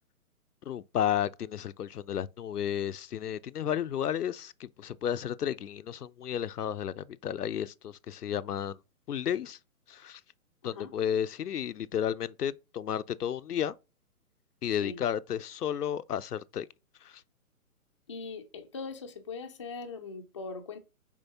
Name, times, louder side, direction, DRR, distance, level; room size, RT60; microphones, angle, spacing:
voice 1, 0.7-8.8 9.1-9.6 9.9-10.2 10.6-13.8 14.6-16.7 17.0-17.2, left 9 dB, 80° left, 0.6 m, -32 dB
voice 2, 10.6-10.9 14.8-15.0 18.1-20.8, left 4 dB, 20° left, 0.5 m, -41 dB
7.1 x 5.0 x 2.8 m
figure-of-eight pair, 135°, 45 cm